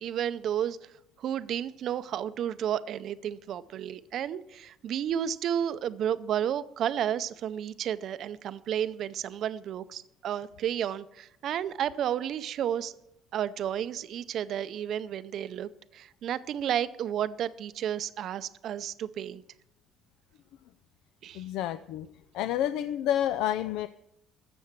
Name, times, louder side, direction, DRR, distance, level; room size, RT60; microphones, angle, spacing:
voice 1, 0.0-12.9 13.3-19.4 21.2-21.4, right 10 dB, 50° right, 15 dB, 0.6 m, -32 dB
voice 2, 21.3-22.1 22.3-23.9, left 11 dB, 80° left, 13 dB, 0.4 m, -29 dB
14.0 x 6.9 x 7.4 m, 0.82 s
cardioid pair, 160°, 0 cm